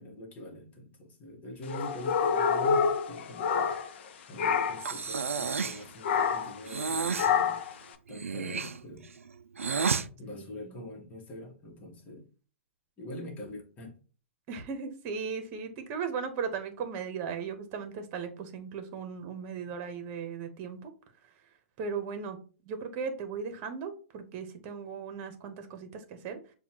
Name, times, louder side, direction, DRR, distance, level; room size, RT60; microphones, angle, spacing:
voice 1, 0.0-3.7 4.3-9.1 10.2-12.3 13.0-14.0 19.7-19.8, left 1 dB, 25° left, 1.4 m, -44 dB
sound 1, 1.7-4.1 4.4-4.9 6.0-6.6 7.2-7.7, left 6 dB, 55° left, 0.7 m, -27 dB
Breathing, 4.8-5.9 6.6-7.3 8.1-10.1, right 5 dB, 85° right, 0.4 m, -31 dB
voice 2, 10.3-10.9 14.5-20.9 21.8-22.4 22.6-26.4, right 6 dB, 35° right, 1.0 m, -37 dB
7.0 x 2.4 x 2.9 m
hypercardioid pair, 120°, 7 cm